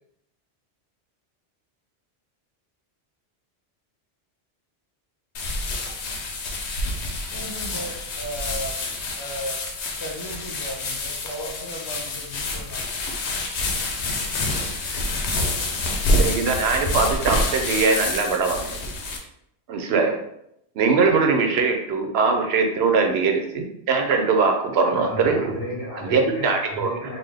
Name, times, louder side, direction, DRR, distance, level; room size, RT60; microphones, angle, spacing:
sound 1, 5.3-19.2, left 2 dB, 90° left, 0.9 m, -27 dB
voice 1, 7.3-8.8 9.1-13.0, equal, 35° left, -1 dB, 0.5 m, -36 dB
voice 2, 16.2-18.8 19.7-20.2 20.8-25.4 26.1-26.9, right 4 dB, 75° right, 4 dB, 0.8 m, -21 dB
voice 3, 24.8-27.2, left 1 dB, 60° left, -5 dB, 1.4 m, -32 dB
3.7 x 2.2 x 3.3 m, 0.77 s
omnidirectional pair, 1.1 m